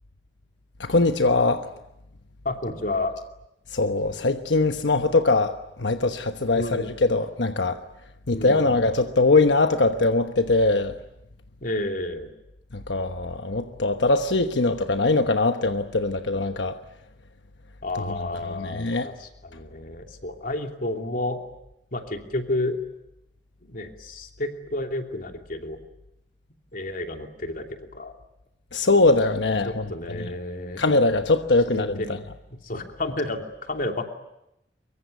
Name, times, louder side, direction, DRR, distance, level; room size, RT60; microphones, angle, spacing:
voice 1, 0.8-1.7 3.7-7.8 8.3-10.9 12.7-16.8 18.5-19.1 28.7-29.8 30.1-30.3 30.8-32.2, left 3 dB, 90° left, 1.1 m, -22 dB
voice 2, 2.4-3.2 6.5-6.9 8.3-8.7 11.6-12.3 17.8-21.4 21.9-22.8 23.6-25.8 26.7-27.7 27.9-28.1 29.6-30.8 31.7-32.2 32.5-34.2, left 2 dB, 55° left, 3.0 m, -31 dB
24.5 x 23.0 x 9.4 m
head